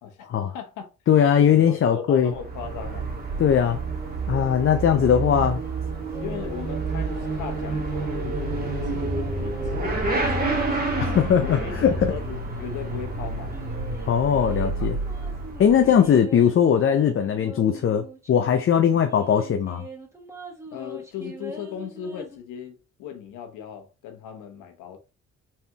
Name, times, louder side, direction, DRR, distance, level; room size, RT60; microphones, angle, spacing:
voice 1, 0.5-0.9 1.5-3.1 6.2-13.7 14.4-14.7 15.7-16.0 18.9-19.0 20.7-25.0, left 8 dB, 90° left, 1.0 m, -38 dB
voice 2, 1.1-2.3 3.4-3.8 4.3-5.6 11.0-12.1 14.1-15.0 15.6-19.8, left 8 dB, 45° left, 0.6 m, -20 dB
Motorcycle / Accelerating revving vroom, 2.2-16.0, right 3 dB, 30° right, 1.7 m, -29 dB
sound 1, 5.2-13.0 13.5-18.4 18.7-18.8 19.1-22.4, right 1 dB, 10° right, 1.5 m, -44 dB
4.3 x 3.4 x 3.0 m
cardioid pair, 90°, 30 cm